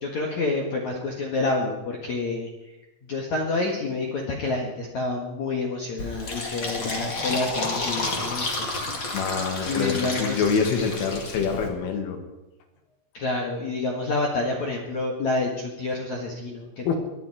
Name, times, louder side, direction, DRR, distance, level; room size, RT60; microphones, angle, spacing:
voice 1, 0.0-2.5 3.1-8.7 9.7-10.6 13.1-16.9, left 3 dB, 60° left, -1 dB, 2.0 m, -28 dB
Fill (with liquid), 6.0-11.7, left 2 dB, 40° left, 1.6 m, -31 dB
voice 2, 9.1-12.2 16.9-17.0, left 5 dB, 75° left, 4 dB, 4.4 m, -26 dB
24.5 x 10.5 x 4.9 m, 1.0 s
omnidirectional pair, 5.9 m